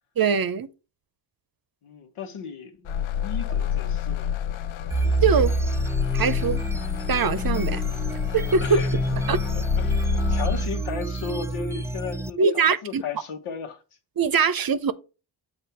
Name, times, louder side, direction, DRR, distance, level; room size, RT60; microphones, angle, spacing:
voice 1, 0.2-0.7 5.2-5.5 6.1-6.6 7.1-7.8 8.3-8.8 9.3-9.4 12.4-13.0 14.2-14.9, right 5 dB, 45° right, 0.7 m, -22 dB
voice 2, 1.8-4.3 8.6-8.9 9.5-13.8, left 5 dB, 90° left, 1.1 m, -35 dB
sound 1, 2.9-10.7, left 9 dB, 70° left, 0.5 m, -28 dB
sound 2, 4.9-12.3, right 2 dB, 5° right, 0.3 m, -28 dB
7.6 x 2.6 x 5.7 m
cardioid pair, 60°, 48 cm